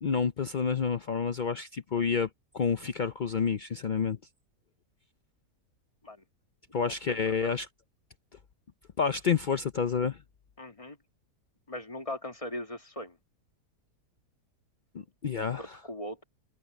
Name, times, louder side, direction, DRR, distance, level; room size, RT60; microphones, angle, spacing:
voice 1, 0.0-2.3 2.5-4.2 6.7-7.7 9.0-10.2 14.9-15.8, left 6 dB, 90° left, 0.4 m, -29 dB
voice 2, 6.8-7.5 10.6-11.0 11.7-13.2 15.5-16.2, left 1 dB, 20° left, 1.8 m, -40 dB
omnidirectional pair, 1.7 m